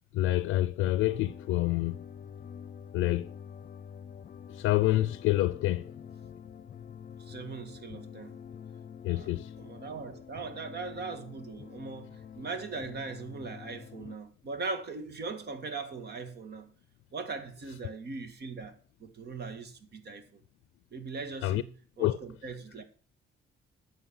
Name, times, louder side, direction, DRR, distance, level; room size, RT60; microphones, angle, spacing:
voice 1, 0.1-2.0 2.9-3.3 4.5-5.9 9.0-9.5 21.4-21.6 22.0-22.2, left 15 dB, 90° left, 0.5 m, -27 dB
sound 1, 1.0-14.2, left 7 dB, 45° left, 0.6 m, -47 dB
voice 2, 7.2-8.4 9.1-9.3 9.6-16.7 17.1-18.7 19.0-20.4 20.9-22.8, right 4 dB, 55° right, 1.8 m, -40 dB
9.4 x 6.6 x 7.0 m
cardioid pair, 90°, 20 cm